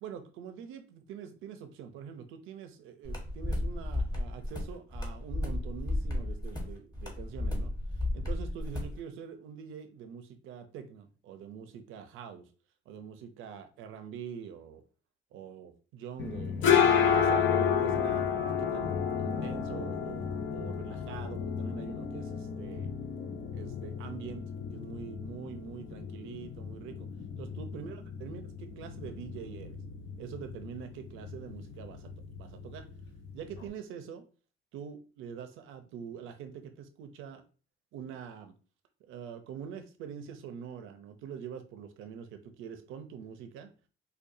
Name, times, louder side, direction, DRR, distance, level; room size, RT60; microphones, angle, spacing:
voice 1, 0.0-7.7 8.1-12.5 12.9-14.8 15.3-22.9 23.5-24.4 24.7-27.1 27.4-29.8 30.2-32.1 32.4-32.8 33.3-34.3 34.7-37.4 37.9-38.5 39.0-43.7, right 7 dB, 90° right, 8 dB, 0.6 m, -44 dB
sound 1, 3.0-9.0, left 1 dB, 20° left, 1.3 m, -33 dB
sound 2, 16.2-33.7, left 7 dB, 75° left, 0.6 m, -32 dB
5.0 x 2.3 x 2.6 m, 0.36 s
cardioid pair, 90°, 20 cm